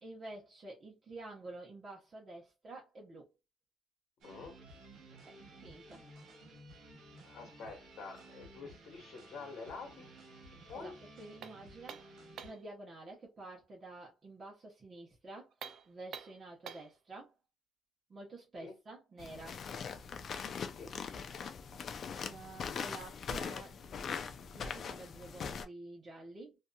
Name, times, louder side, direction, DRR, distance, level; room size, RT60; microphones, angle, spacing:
voice 1, 0.0-3.3 5.2-6.0 10.7-15.5 15.9-17.3 18.1-19.6 22.2-24.2 24.5-26.6, right 2 dB, 30° right, 0.9 m, -50 dB
voice 2, 4.2-4.6 7.2-10.1 10.7-11.0 18.6-18.8 20.8-21.0 23.5-23.7, left 4 dB, 70° left, 1.2 m, -47 dB
sound 1, 4.2-12.5, right 1 dB, 85° right, 1.1 m, -55 dB
sound 2, 11.4-12.7 15.5-17.0, right 8 dB, 65° right, 0.4 m, -48 dB
sound 3, 19.2-25.6, left 6 dB, 50° left, 0.4 m, -41 dB
2.6 x 2.5 x 2.3 m
cardioid pair, 125°, 0 cm